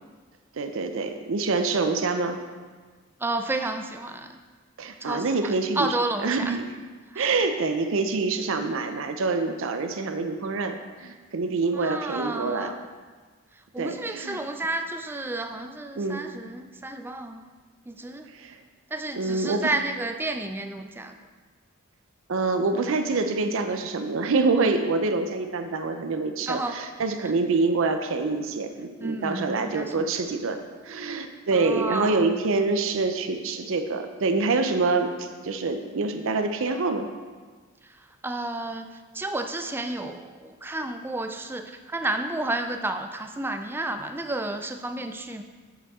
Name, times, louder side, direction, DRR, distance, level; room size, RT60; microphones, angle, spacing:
voice 1, 0.6-2.4 4.8-6.0 6.2-6.7 7.2-12.8 13.8-14.4 16.0-16.2 18.3-18.6 19.1-19.7 22.3-37.1, right 3 dB, 65° right, 7 dB, 0.5 m, -26 dB
voice 2, 3.2-4.4 5.0-6.6 7.1-7.3 11.8-12.8 13.7-17.4 17.9-18.3 18.9-21.2 26.5-26.8 27.2-27.3 29.0-30.1 31.5-32.3 38.2-38.9 39.1-45.4, right 2 dB, 10° right, 7 dB, 0.3 m, -31 dB
7.2 x 6.9 x 3.6 m, 1.4 s
head